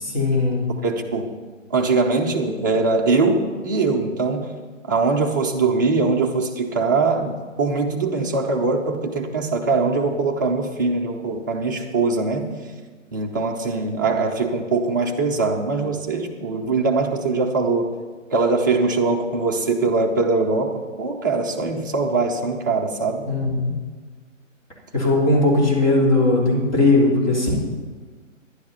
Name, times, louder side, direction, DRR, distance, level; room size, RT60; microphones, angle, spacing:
voice 1, 0.0-0.6 23.3-23.7 24.9-27.6, left 2 dB, 35° left, -3 dB, 3.3 m, -18 dB
voice 2, 0.7-1.3 1.7-4.5 4.9-12.5 13.1-17.9 18.3-23.2, right 3 dB, 15° right, 0 dB, 0.6 m, -22 dB
11.0 x 9.7 x 5.5 m, 1.4 s
figure-of-eight pair, 135°, 39 cm